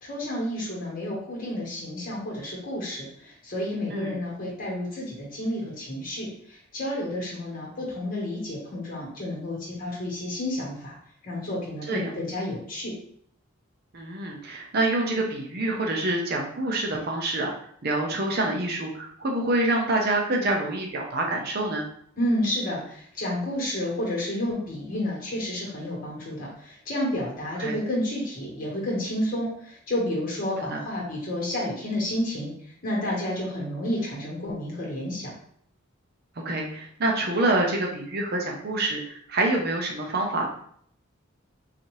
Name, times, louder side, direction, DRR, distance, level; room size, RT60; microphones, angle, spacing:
voice 1, 0.0-11.0 11.2-12.9 22.2-32.5 32.8-35.3, left 1 dB, 40° left, -3 dB, 1.4 m, -30 dB
voice 2, 13.9-17.5 17.8-21.9 27.6-27.8 30.7-30.8 36.4-40.5, right 2 dB, 45° right, 0 dB, 0.6 m, -26 dB
4.0 x 2.7 x 3.1 m, 0.64 s
head